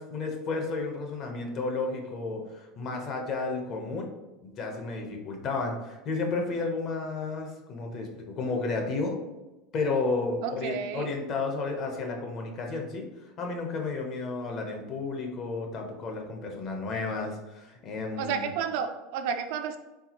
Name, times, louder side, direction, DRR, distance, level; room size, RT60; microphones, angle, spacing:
voice 1, 0.0-4.1 4.4-9.2 9.7-13.1 13.4-18.5, left 3 dB, 40° left, 2 dB, 0.9 m, -32 dB
voice 2, 10.4-11.1 18.2-19.8, right 7 dB, 65° right, 7 dB, 0.5 m, -31 dB
4.6 x 3.7 x 2.9 m, 1.1 s
supercardioid pair, 150°, 0 cm